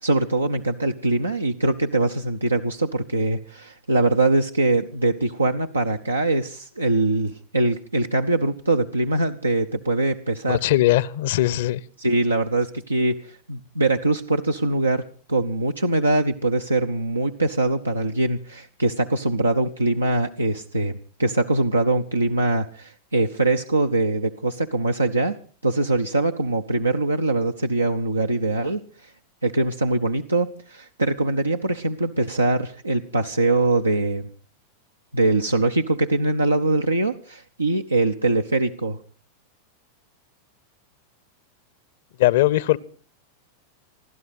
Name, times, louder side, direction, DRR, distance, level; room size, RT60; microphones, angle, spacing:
voice 1, 0.0-10.6 12.0-25.4 25.6-29.1 29.4-34.3 35.1-39.0, right 2 dB, 80° right, 5 dB, 0.8 m, -22 dB
voice 2, 10.5-11.8 42.2-42.8, left 15 dB, 55° left, 22 dB, 0.8 m, -20 dB
28.0 x 12.5 x 4.1 m, 0.40 s
figure-of-eight pair, 90°, 0 cm